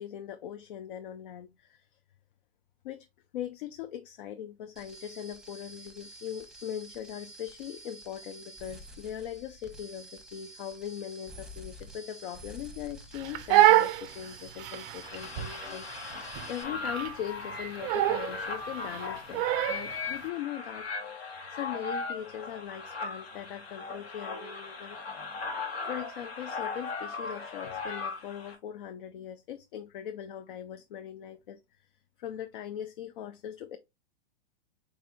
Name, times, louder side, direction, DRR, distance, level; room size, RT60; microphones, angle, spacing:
voice 1, 0.0-1.9 2.8-3.1 3.3-16.0 16.5-20.9 21.5-25.0 25.8-31.9 32.2-33.8, left 10 dB, 60° left, 0.6 m, -40 dB
sound 1, 4.8-16.6, right 1 dB, ahead, 0.9 m, -49 dB
Crying sobbing, 13.1-20.0, right 14 dB, 30° right, 0.4 m, -27 dB
sound 2, 15.0-28.6, left 4 dB, 85° left, 1.6 m, -38 dB
4.4 x 3.4 x 2.6 m
hypercardioid pair, 110°, 30 cm